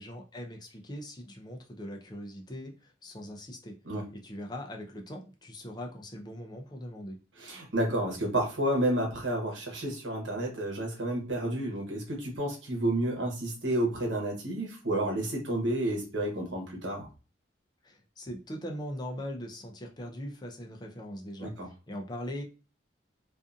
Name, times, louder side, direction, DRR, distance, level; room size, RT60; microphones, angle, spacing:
voice 1, 0.0-3.8 4.1-7.2 17.8-21.5 21.9-22.4, equal, 20° left, 2 dB, 0.4 m, -41 dB
voice 2, 7.4-17.1 21.4-21.7, right 1 dB, 80° right, -1 dB, 1.0 m, -30 dB
2.5 x 2.5 x 2.4 m, 0.32 s
head